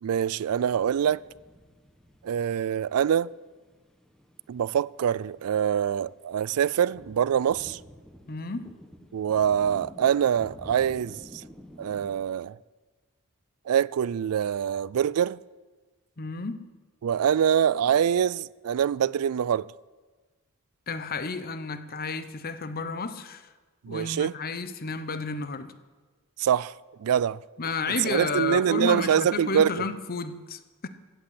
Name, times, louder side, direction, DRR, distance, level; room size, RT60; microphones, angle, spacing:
voice 1, 0.0-1.2 2.2-3.3 4.5-7.8 9.1-11.4 11.8-12.6 13.7-15.4 17.0-19.7 23.8-24.3 26.4-26.7 27.0-27.4 28.0-29.8, right 8 dB, 75° right, 0.3 m, -24 dB
sound 1, 0.7-12.2, equal, 5° left, 1.3 m, -50 dB
voice 2, 8.3-8.7 16.2-16.7 20.9-23.5 23.9-25.7 27.6-30.9, left 4 dB, 40° left, 0.9 m, -32 dB
16.0 x 8.5 x 8.6 m
head